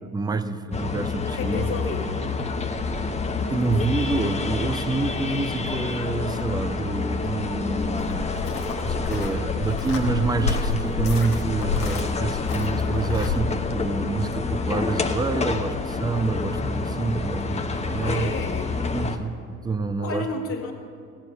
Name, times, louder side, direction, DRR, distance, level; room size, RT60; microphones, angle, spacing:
voice 1, 0.0-1.8 3.5-8.3 8.8-18.3 18.9-20.3, right 3 dB, 10° right, 11 dB, 0.6 m, -27 dB
sound 1, 0.7-19.2, left 4 dB, 15° left, 0.9 m, -28 dB
voice 2, 1.3-2.2 17.9-18.7 20.0-20.7, left 4 dB, 40° left, 1 dB, 2.0 m, -31 dB
sound 2, 8.0-13.3, left 5 dB, 85° left, 1.5 m, -30 dB
16.5 x 7.2 x 8.0 m, 2.2 s
hypercardioid pair, 70°, 45 cm